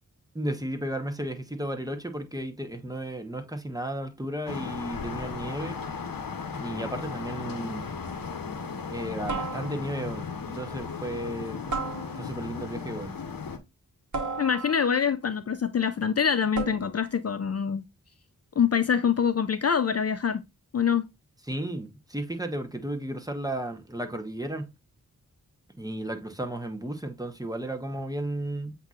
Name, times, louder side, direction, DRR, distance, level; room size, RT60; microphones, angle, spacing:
voice 1, 0.3-5.8 6.6-7.9 8.9-11.8 12.2-13.1 21.5-24.7 25.8-28.8, right 1 dB, 10° right, 1.0 m, -34 dB
sound 1, 4.5-13.6, left 5 dB, 75° left, 0.8 m, -36 dB
sound 2, 7.5-7.8 9.3-10.1 11.7-12.5 14.1-15.1 16.5-17.1, right 3 dB, 60° right, 1.2 m, -35 dB
voice 2, 14.4-17.8 18.6-20.4 20.7-21.1, left 7 dB, 45° left, 0.4 m, -25 dB
7.9 x 2.8 x 2.4 m
cardioid pair, 50°, 35 cm